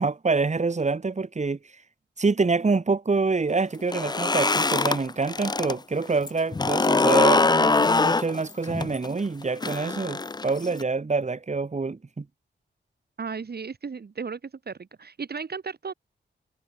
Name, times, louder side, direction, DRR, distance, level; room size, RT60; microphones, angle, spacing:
voice 1, 0.0-1.6 2.2-12.3, right 4 dB, 35° right, 2.8 m, -26 dB
sound 1, 3.8-5.7 6.1-10.8, left 3 dB, 20° left, 0.5 m, -23 dB
voice 2, 13.2-15.9, right 5 dB, 55° right, 2.4 m, -35 dB
wide cardioid pair, 110°, 20 cm